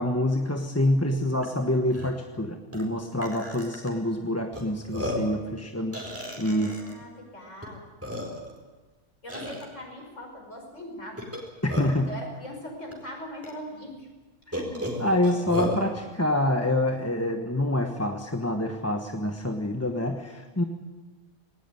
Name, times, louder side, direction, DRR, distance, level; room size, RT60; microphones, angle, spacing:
voice 1, 0.0-6.0 6.4-6.7 11.6-12.1 14.5-20.6, left 1 dB, 10° left, 4 dB, 1.1 m, -26 dB
Burping eructation, 1.4-1.5 1.9-2.1 2.7-2.8 3.2-3.9 4.5-4.6 4.9-5.3 5.9-6.9 7.6-7.7 8.0-8.6 9.3-9.6 11.2-12.1 12.9-13.0 13.4-13.5 14.5-15.8, left 1 dB, 10° right, 4.4 m, -33 dB
voice 2, 6.4-7.8 9.2-11.2 12.0-14.1, equal, 55° left, 1 dB, 6.0 m, -41 dB
19.5 x 19.0 x 9.3 m, 1.2 s
omnidirectional pair, 1.6 m